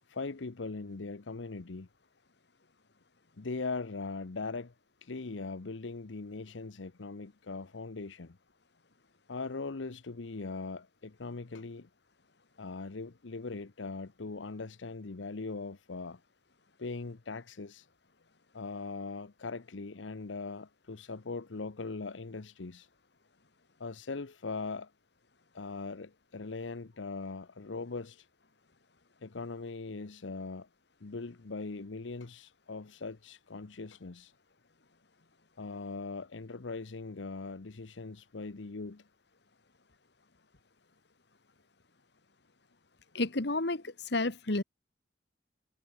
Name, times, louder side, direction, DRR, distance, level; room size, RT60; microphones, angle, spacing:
voice 1, 0.1-1.9 3.4-4.7 5.0-8.4 9.3-11.9 12.6-16.2 16.8-17.9 18.5-22.9 23.8-24.9 25.5-28.3 29.2-30.7 31.0-34.3 35.6-39.0, left 3 dB, 90° left, 0.9 m, -40 dB
voice 2, 43.1-44.6, left 2 dB, 65° left, 1.7 m, -31 dB
head